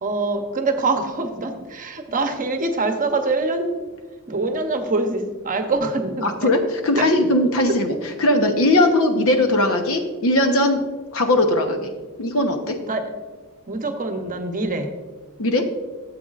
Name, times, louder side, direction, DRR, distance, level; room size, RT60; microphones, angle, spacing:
voice 1, 0.0-3.7 4.3-6.5 7.0-7.1 7.7-7.8 12.9-13.1 13.7-14.9, right 3 dB, 40° right, 6 dB, 0.9 m, -24 dB
voice 2, 6.2-10.9 11.1-11.9 12.2-12.8 15.4-15.7, left 1 dB, 65° left, 5 dB, 1.1 m, -19 dB
12.5 x 7.8 x 2.5 m, 1.3 s
head